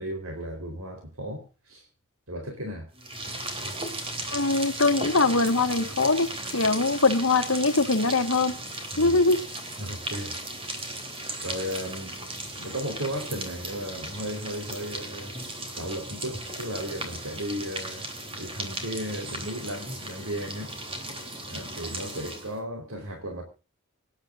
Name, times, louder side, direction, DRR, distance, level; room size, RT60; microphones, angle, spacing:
voice 1, 0.0-1.8 2.3-2.9 8.9-9.2 9.8-10.3 11.4-12.1 12.5-15.4 15.8-20.7 21.5-23.4, equal, 75° right, 4.2 m, -35 dB
sound 1, 3.0-22.6, right 2 dB, 25° right, 3.5 m, -36 dB
voice 2, 4.3-6.3 6.5-8.5 9.0-9.5, left 3 dB, 65° left, 1.6 m, -22 dB
25.5 x 10.5 x 2.6 m
head